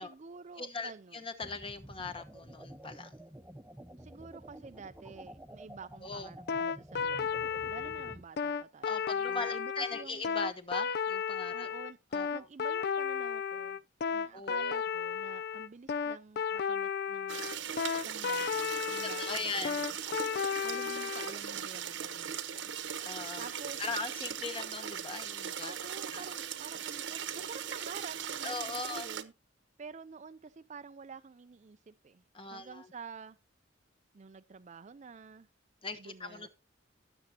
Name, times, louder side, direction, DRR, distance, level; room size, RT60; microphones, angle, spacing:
voice 1, 0.0-1.2 4.0-10.2 11.5-12.0 12.3-13.8 14.1-17.5 18.0-19.7 20.6-22.7 23.4-24.0 25.6-29.3 29.8-33.4 34.1-35.5 36.0-36.5, right 5 dB, 40° right, 0.4 m, -49 dB
voice 2, 0.6-3.2 6.0-6.3 8.8-11.7 12.1-12.4 14.3-14.8 19.0-19.8 23.0-23.4 23.8-25.7 26.1-26.3 28.4-29.1 32.3-32.8 35.8-36.5, left 3 dB, 30° left, 1.1 m, -40 dB
sound 1, 1.4-8.2, right 1 dB, 10° right, 0.8 m, -50 dB
sound 2, 6.5-21.3, left 6 dB, 55° left, 0.4 m, -33 dB
sound 3, 17.3-29.2, right 8 dB, 70° right, 1.0 m, -39 dB
17.0 x 7.1 x 2.8 m
head